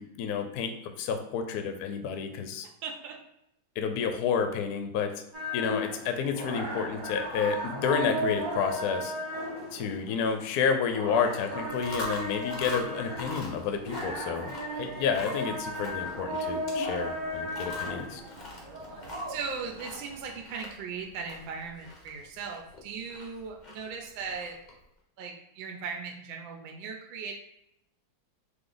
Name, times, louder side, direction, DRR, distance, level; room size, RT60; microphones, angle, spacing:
voice 1, 0.0-2.7 3.8-5.1 5.5-9.1 9.7-18.2, left 6 dB, 70° left, 6 dB, 0.9 m, -30 dB
voice 2, 2.8-3.1 19.3-24.5 25.2-27.4, right 5 dB, 80° right, 1 dB, 1.3 m, -38 dB
sound 1, 5.3-20.4, equal, 30° right, 1.3 m, -36 dB
Chewing mastication, 11.6-24.8, left 2 dB, 50° left, 0.5 m, -44 dB
3.9 x 3.0 x 3.9 m, 0.80 s
omnidirectional pair, 2.1 m